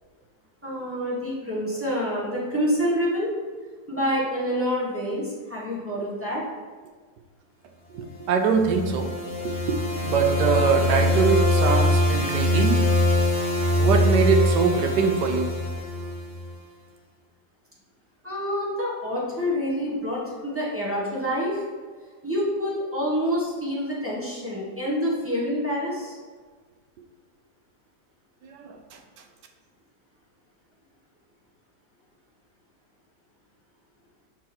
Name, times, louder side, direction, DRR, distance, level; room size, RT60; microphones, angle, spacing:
voice 1, 0.6-3.3 3.9-6.4 18.2-21.6 22.2-26.2, equal, 10° right, -6 dB, 1.3 m, -27 dB
voice 2, 7.9-9.1 9.4-12.8 13.8-15.5 28.4-28.8, right 5 dB, 75° right, 4 dB, 1.3 m, -23 dB
sound 1, 8.3-16.5, left 1 dB, 35° left, 0.9 m, -23 dB
6.2 x 4.3 x 4.3 m, 1.5 s
omnidirectional pair, 1.9 m